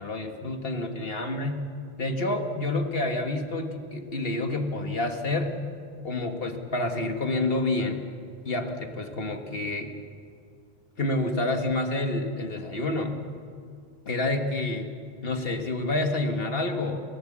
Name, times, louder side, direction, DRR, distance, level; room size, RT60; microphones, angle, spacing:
voice 1, 0.0-1.6 2.0-5.6 6.0-8.1 8.5-9.9 11.0-13.2 14.1-14.9 15.2-17.0, left 2 dB, 70° left, 5 dB, 1.8 m, -28 dB
30.0 x 14.0 x 7.5 m, 2.3 s
omnidirectional pair, 1.0 m